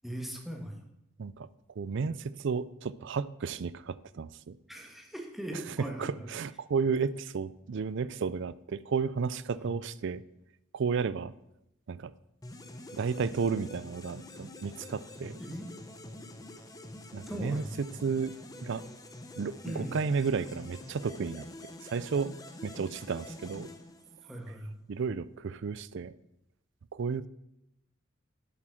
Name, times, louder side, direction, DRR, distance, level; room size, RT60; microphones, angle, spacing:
voice 1, 0.0-0.8 4.7-6.3 9.5-9.7 15.4-15.7 17.3-17.7 19.6-19.9 24.2-24.7 25.0-25.1, equal, ahead, 2 dB, 1.5 m, -39 dB
voice 2, 1.8-4.6 5.5-10.2 10.7-11.3 11.9-12.1 12.9-15.4 17.1-18.3 18.6-18.8 19.4-21.5 21.8-22.3 22.6-23.7 24.9-26.1 26.9-27.3, right 5 dB, 60° right, 17 dB, 0.4 m, -32 dB
sound 1, 12.4-24.5, left 1 dB, 20° left, 0.9 m, -47 dB
8.1 x 7.5 x 6.2 m, 0.83 s
head